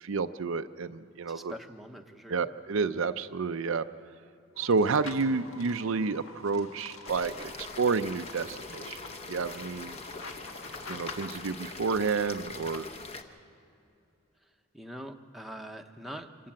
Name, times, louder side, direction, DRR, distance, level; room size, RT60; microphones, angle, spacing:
voice 1, 0.0-1.5 2.3-3.8 4.6-9.0 9.3-10.0 10.9-12.9, right 4 dB, 65° right, 10 dB, 0.5 m, -30 dB
voice 2, 1.3-2.5 14.4-16.5, equal, ahead, 3 dB, 0.8 m, -44 dB
sound 1, 4.5-11.3, left 3 dB, 75° left, 1.8 m, -46 dB
sound 2, 7.0-13.2, left 3 dB, 30° left, 0.9 m, -43 dB
25.5 x 13.0 x 8.8 m, 2.7 s
head